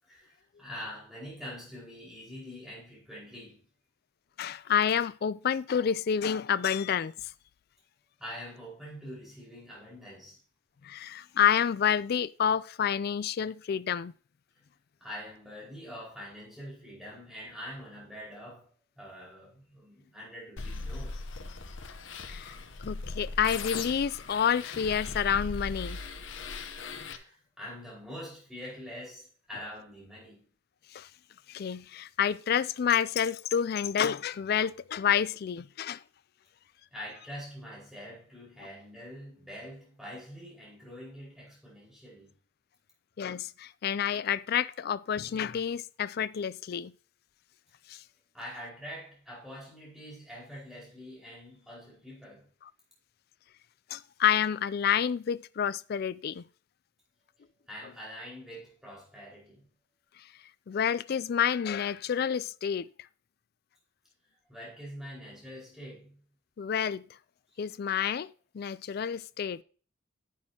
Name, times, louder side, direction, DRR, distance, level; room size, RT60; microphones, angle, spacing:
voice 1, 0.0-3.6 8.2-10.4 15.0-18.7 19.0-21.2 27.1-30.5 36.9-42.3 48.3-52.5 57.7-59.7 64.5-66.2 67.5-67.6, equal, ahead, 4.8 m, -45 dB
voice 2, 4.4-7.3 10.8-14.1 22.3-22.5 22.8-26.0 30.9-31.1 31.5-36.0 43.2-46.9 47.9-48.0 53.9-56.4 60.7-62.9 66.6-67.1 67.6-69.6, left 8 dB, 50° left, 0.3 m, -29 dB
sound 1, 20.6-27.2, left 3 dB, 70° left, 0.9 m, -39 dB
10.5 x 8.8 x 2.8 m
head